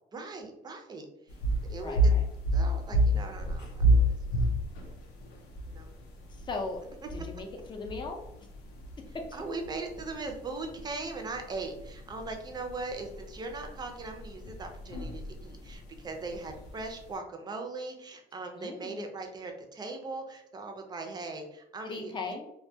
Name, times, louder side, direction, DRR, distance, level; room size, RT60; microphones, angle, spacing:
voice 1, 0.1-1.4 1.7-2.1 2.5-4.4 4.8-5.1 5.7-5.9 9.3-22.4, right 3 dB, 25° right, 4 dB, 0.5 m, -40 dB
sound 1, 1.3-17.2, right 1 dB, 90° left, 0.5 m, -31 dB
voice 2, 1.7-2.2 6.3-6.8 7.1-8.2 9.1-9.3 18.5-19.0 21.8-22.5, left 3 dB, 30° left, 2 dB, 0.5 m, -38 dB
2.2 x 2.1 x 2.6 m, 0.81 s
cardioid pair, 110°, 17 cm